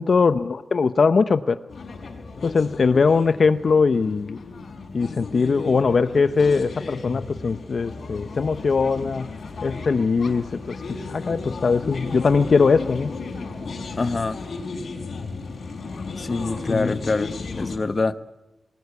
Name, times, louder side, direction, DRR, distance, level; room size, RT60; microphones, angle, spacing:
voice 1, 0.0-1.6 2.4-4.4 4.9-9.3 9.6-10.7 11.1-13.1 16.7-17.0, left 4 dB, 60° left, 11 dB, 0.8 m, -21 dB
sound 1, 1.7-17.8, left 4 dB, 75° left, 4.7 m, -35 dB
voice 2, 14.0-14.4 16.2-18.2, left 3 dB, 40° left, 12 dB, 1.1 m, -25 dB
28.5 x 19.5 x 8.3 m, 1.0 s
wide cardioid pair, 125°, 0 cm